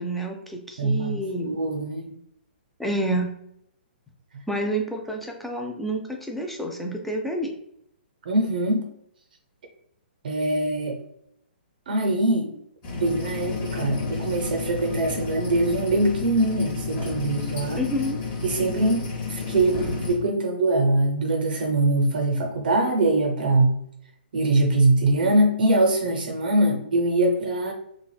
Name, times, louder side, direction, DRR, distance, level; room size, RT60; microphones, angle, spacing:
voice 1, 0.0-1.6 2.8-3.3 4.5-7.5 17.8-18.2, right 1 dB, ahead, 1 dB, 0.4 m, -29 dB
voice 2, 0.8-2.1 8.3-8.9 10.2-11.0 11.9-12.5 12.9-17.8 18.4-23.7 24.3-27.7, right 2 dB, 60° right, 2 dB, 0.5 m, -23 dB
sound 1, 12.8-20.2, left 4 dB, 30° left, 0.8 m, -31 dB
3.1 x 2.5 x 2.3 m, 0.72 s
figure-of-eight pair, 125°, 6 cm